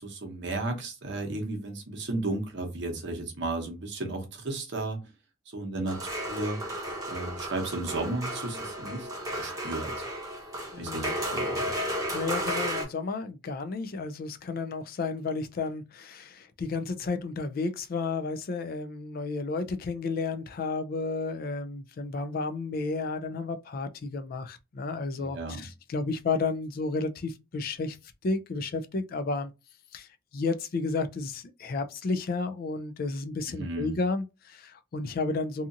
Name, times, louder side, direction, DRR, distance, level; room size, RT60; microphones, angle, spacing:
voice 1, 0.0-5.0 5.5-6.6 7.1-9.1 9.4-10.1 10.8-11.7 25.2-25.6 33.5-34.0, right 2 dB, 55° right, 0.8 m, -34 dB
sound 1, 5.8-12.8, equal, 15° right, 0.8 m, -33 dB
voice 2, 10.7-11.1 11.8-11.9 12.1-28.0 28.2-29.5 29.9-35.7, left 3 dB, 45° left, 0.3 m, -32 dB
2.7 x 2.4 x 2.5 m
head